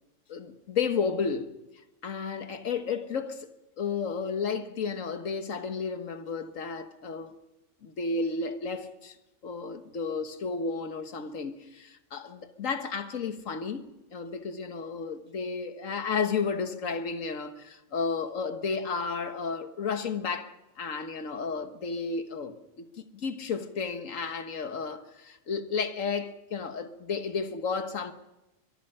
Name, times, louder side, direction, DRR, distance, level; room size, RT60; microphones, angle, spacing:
voice 1, 0.3-1.5 2.0-3.5 3.8-7.3 7.8-9.1 9.4-28.1, left 5 dB, 75° left, 1.7 m, -32 dB
23.0 x 23.0 x 5.6 m
omnidirectional pair, 1.4 m